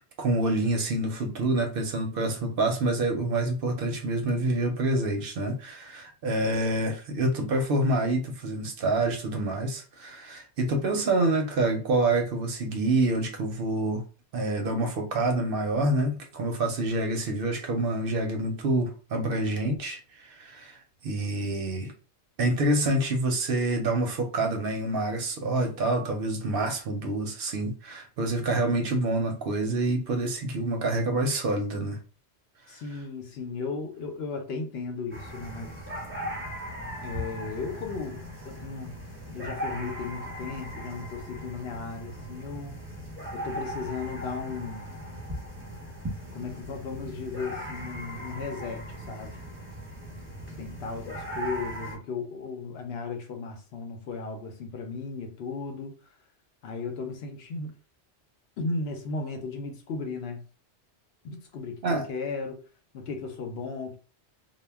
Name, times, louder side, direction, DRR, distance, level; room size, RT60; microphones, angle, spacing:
voice 1, 0.2-14.1 14.3-21.9 22.4-32.0 61.8-62.1, right 2 dB, 65° right, 0.7 m, -27 dB
voice 2, 32.7-35.7 37.0-39.0 39.3-42.8 43.3-44.9 46.3-49.4 50.6-56.1 56.6-57.7 58.6-60.5 61.2-62.6 62.9-64.0, left 4 dB, 70° left, 0.8 m, -35 dB
sound 1, 35.1-52.0, equal, 15° right, 0.7 m, -38 dB
2.1 x 2.1 x 3.3 m
omnidirectional pair, 1.2 m